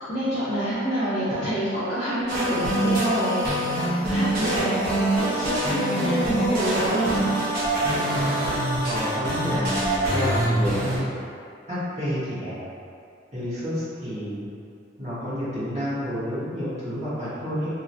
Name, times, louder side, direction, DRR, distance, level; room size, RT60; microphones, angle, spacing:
voice 1, 0.1-3.4 3.9-7.4, right 1 dB, 55° left, -13 dB, 0.9 m, -26 dB
sound 1, 2.3-11.0, right 1 dB, 55° right, 0.8 m, -25 dB
voice 2, 8.8-11.0 11.7-12.6 13.3-14.5 15.0-17.7, equal, 35° right, -14 dB, 1.4 m, -29 dB
2.9 x 2.8 x 2.6 m, 2.4 s
head